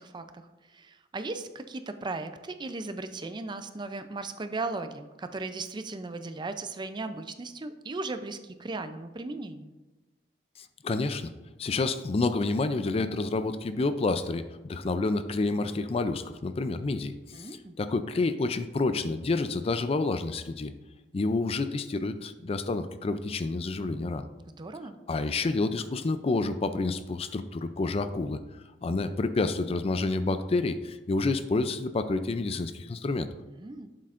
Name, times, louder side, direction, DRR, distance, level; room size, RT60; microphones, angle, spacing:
voice 1, 0.0-9.7 17.3-17.7 24.5-25.0 33.5-33.9, right 3 dB, 25° right, 9 dB, 0.4 m, -37 dB
voice 2, 10.8-11.3 11.6-17.5 17.8-20.7 21.1-24.2 25.1-28.4 28.8-33.3, left 3 dB, 35° left, 11 dB, 0.4 m, -29 dB
11.0 x 7.6 x 2.5 m, 1.1 s
head